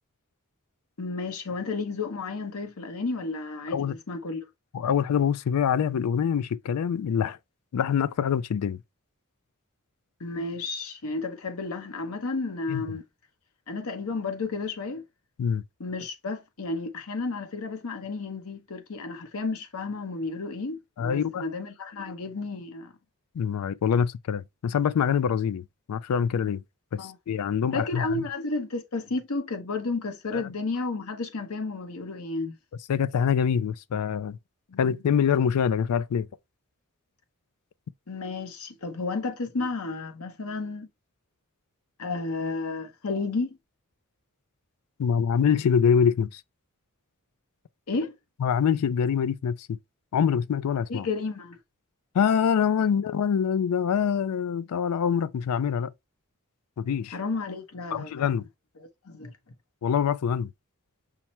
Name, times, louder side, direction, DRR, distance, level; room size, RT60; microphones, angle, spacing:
voice 1, 1.0-4.4 10.2-13.0 13.7-15.0 15.8-22.9 26.9-27.2 27.7-32.5 34.7-35.0 38.1-40.9 42.0-43.6 47.9-48.1 50.9-51.6 57.1-58.3 59.0-59.3, left 3 dB, 70° left, 0.9 m, -32 dB
voice 2, 4.7-7.4 7.7-8.8 12.7-12.8 15.4-15.6 21.0-21.4 23.4-26.6 26.9-28.0 30.3-30.4 32.9-34.4 34.8-36.3 45.0-46.4 48.4-49.8 50.1-51.1 52.1-55.9 56.8-57.2 57.9-58.4 59.8-60.5, left 7 dB, 90° left, 0.4 m, -25 dB
5.7 x 2.1 x 4.2 m
head